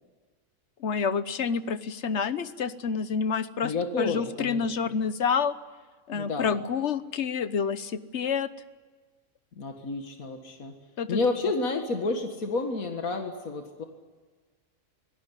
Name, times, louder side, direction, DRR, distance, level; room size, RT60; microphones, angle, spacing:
voice 1, 0.8-5.5 6.1-8.5 11.0-11.1, left 6 dB, 55° left, 13 dB, 1.3 m, -28 dB
voice 2, 3.6-5.0 6.1-6.6 9.6-10.8 11.1-13.8, left 3 dB, 80° left, 4 dB, 2.2 m, -30 dB
25.0 x 17.0 x 9.9 m, 1.4 s
omnidirectional pair, 1.4 m